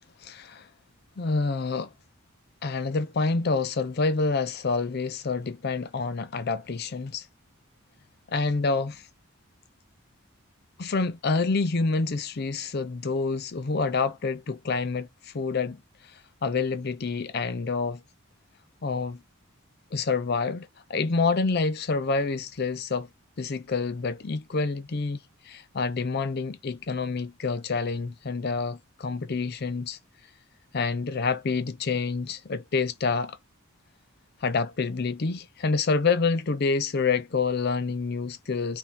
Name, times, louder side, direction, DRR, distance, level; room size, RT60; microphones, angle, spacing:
voice 1, 0.2-0.7 1.2-1.9 2.6-7.3 8.3-9.1 10.8-18.0 18.8-19.2 19.9-23.1 23.4-30.0 30.7-33.4 34.4-38.8, left 4 dB, 45° left, 0.5 m, -27 dB
3.6 x 2.8 x 4.0 m
head